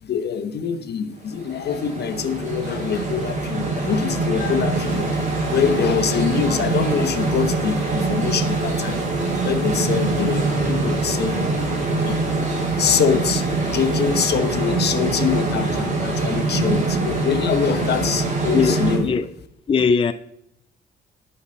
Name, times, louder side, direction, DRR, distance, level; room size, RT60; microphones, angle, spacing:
voice 1, 0.0-5.2 5.5-9.0 9.4-11.5 12.0-19.1, left 7 dB, 55° left, 1.0 m, -24 dB
sound 1, 1.1-19.0, right 3 dB, 35° right, 3.4 m, -23 dB
sound 2, 4.7-14.2, right 3 dB, 80° right, 4.0 m, -45 dB
voice 2, 19.7-20.1, left 5 dB, 25° left, 0.4 m, -19 dB
10.5 x 5.6 x 4.4 m
cardioid pair, 90°, 20 cm